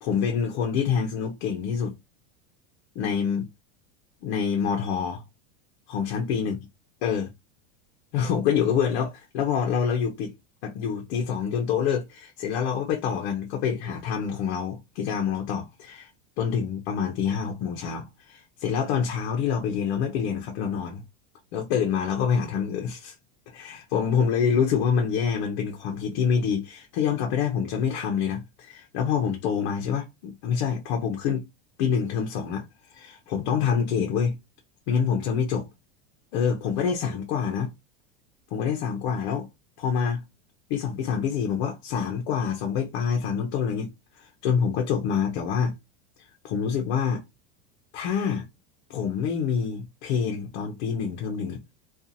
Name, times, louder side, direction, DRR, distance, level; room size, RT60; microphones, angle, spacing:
voice 1, 0.0-2.0 2.9-3.5 4.2-5.2 5.9-6.6 7.0-7.3 8.1-10.3 10.6-16.1 16.4-21.0 21.5-23.1 23.5-31.4 31.8-32.7 32.9-34.4 34.9-35.7 36.3-37.7 38.5-39.5 39.8-40.2 40.7-43.9 44.2-45.7 46.4-47.2 47.9-48.5 48.9-51.7, left 7 dB, 60° left, 0.8 m, -26 dB
2.4 x 2.4 x 2.7 m
supercardioid pair, 145°, 32 cm